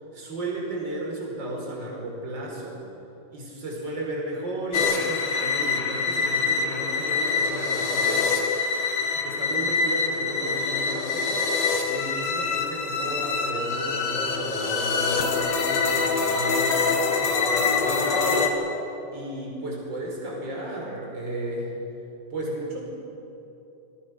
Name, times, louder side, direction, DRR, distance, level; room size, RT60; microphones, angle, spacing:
voice 1, 0.1-2.8 3.3-8.3 9.1-11.3 11.8-17.2 17.4-18.4 19.1-21.7 22.3-22.9, right 1 dB, 25° right, -2 dB, 5.5 m, -34 dB
sound 1, 4.7-18.5, left 4 dB, 50° left, 2.2 m, -25 dB
27.0 x 20.5 x 6.6 m, 3.0 s
omnidirectional pair, 5.2 m